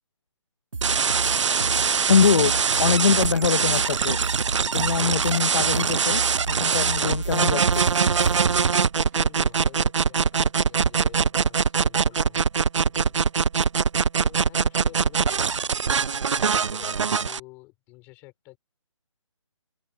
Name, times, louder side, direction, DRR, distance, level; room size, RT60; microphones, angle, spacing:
sound 1, 0.7-8.6, right 4 dB, 90° right, 2.6 m, -32 dB
sound 2, 0.8-17.4, right 6 dB, 65° right, 0.6 m, -22 dB
voice 1, 2.1-4.2 4.7-6.2 6.5-7.9, left 6 dB, 50° left, 0.7 m, -23 dB
sound 3, 2.9-9.2 9.5-9.6, right 8 dB, 35° right, 2.9 m, -50 dB
voice 2, 9.0-12.4 13.0-13.3 14.1-18.6, left 23 dB, 10° left, 4.7 m, -49 dB
open air
hypercardioid pair, 175°, 17 cm